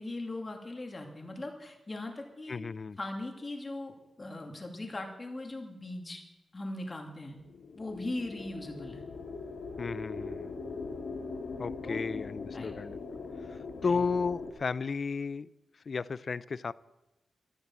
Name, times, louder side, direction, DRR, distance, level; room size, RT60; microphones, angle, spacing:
voice 1, 0.0-2.6 3.0-6.2 6.5-7.4 7.7-9.0 11.8-12.1 12.5-12.7 13.8-13.9, left 2 dB, 20° left, 3 dB, 2.5 m, -39 dB
voice 2, 2.5-3.0 9.8-10.5 11.6-13.0 13.4-15.5 15.9-16.7, left 5 dB, 40° left, 18 dB, 0.4 m, -33 dB
sound 1, 7.4-14.5, left 4 dB, 60° left, 2.1 m, -41 dB
14.0 x 13.0 x 7.4 m, 1.0 s
wide cardioid pair, 180°, 0 cm